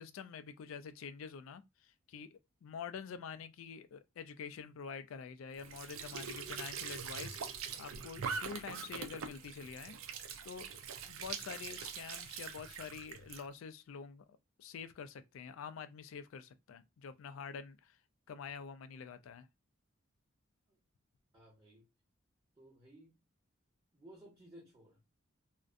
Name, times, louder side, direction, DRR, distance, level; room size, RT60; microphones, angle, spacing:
voice 1, 0.0-2.3 2.6-10.0 10.4-18.0 18.3-19.5, left 6 dB, 75° left, 0.3 m, -47 dB
Squeak / Sink (filling or washing) / Trickle dribble, 5.5-13.4, right 6 dB, 80° right, 0.4 m, -43 dB
voice 2, 21.3-21.9 22.6-23.2 23.9-25.1, right 1 dB, 20° right, 0.7 m, -58 dB
2.5 x 2.1 x 2.4 m
head